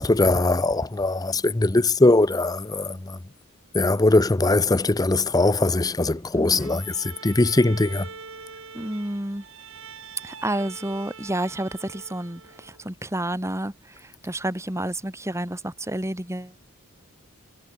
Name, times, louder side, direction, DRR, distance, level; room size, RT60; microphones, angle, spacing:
voice 1, 0.0-3.2 3.7-8.1, left 2 dB, 15° left, 0.6 m, -21 dB
voice 2, 6.3-6.8 8.7-9.5 10.2-16.6, right 1 dB, 15° right, 2.2 m, -30 dB
Bowed string instrument, 6.6-12.9, right 5 dB, 60° right, 4.5 m, -43 dB
head